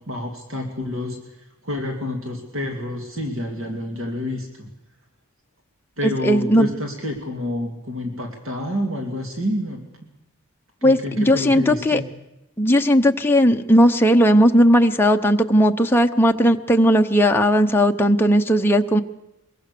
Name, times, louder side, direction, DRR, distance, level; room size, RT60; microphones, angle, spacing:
voice 1, 0.1-4.7 6.0-10.1 10.8-12.0, left 1 dB, 65° right, 2 dB, 2.8 m, -28 dB
voice 2, 6.2-6.7 10.8-12.0 12.6-19.0, equal, 10° left, 3 dB, 0.8 m, -16 dB
23.0 x 23.0 x 6.8 m, 0.92 s
head